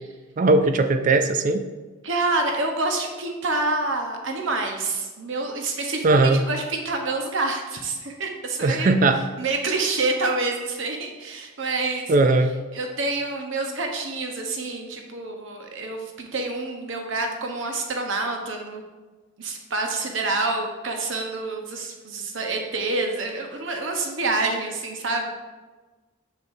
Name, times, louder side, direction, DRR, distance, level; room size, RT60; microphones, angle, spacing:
voice 1, 0.4-1.6 6.0-6.4 8.6-9.2 12.1-12.6, right 2 dB, 35° right, 9 dB, 0.3 m, -19 dB
voice 2, 2.0-9.0 9.4-12.1 12.7-18.8 19.4-25.3, right 3 dB, 65° right, 3 dB, 0.9 m, -27 dB
6.8 x 6.5 x 2.6 m, 1.3 s
head